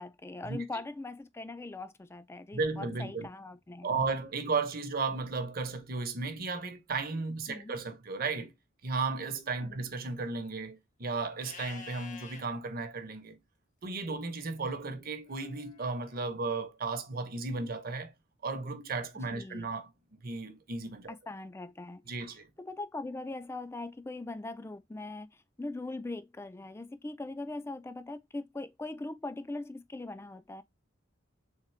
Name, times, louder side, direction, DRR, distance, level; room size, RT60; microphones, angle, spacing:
voice 1, 0.0-3.9 7.5-7.7 9.6-9.9 19.1-19.7 21.1-22.0 22.6-30.6, left 2 dB, 15° left, 0.3 m, -41 dB
voice 2, 2.5-3.3 3.8-8.5 8.8-13.4 13.8-18.1 18.4-19.9 20.2-21.1 22.1-22.5, right 4 dB, 45° right, 0.8 m, -34 dB
Livestock farm animals working animals, 11.4-12.4 15.3-16.2, left 5 dB, 40° left, 0.7 m, -48 dB
3.6 x 3.6 x 3.1 m
head